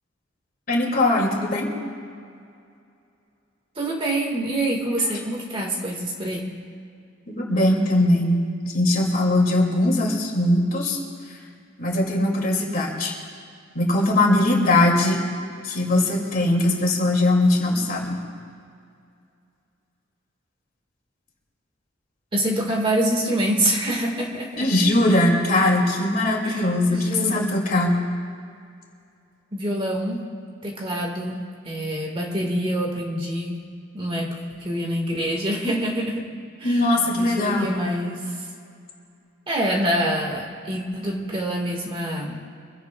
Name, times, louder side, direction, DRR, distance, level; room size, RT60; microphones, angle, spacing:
voice 1, 0.7-1.7 7.3-11.0 11.8-13.2 13.7-15.2 15.6-18.2 24.6-28.0 36.6-37.7, left 1 dB, 45° left, -1 dB, 2.9 m, -20 dB
voice 2, 3.8-6.5 22.3-24.8 26.4-27.5 29.5-30.2 30.6-33.6 33.9-36.3 36.6-36.8 37.1-38.4 39.5-42.4, right 1 dB, 25° right, 0 dB, 2.1 m, -26 dB
26.0 x 16.5 x 2.5 m, 2.3 s
head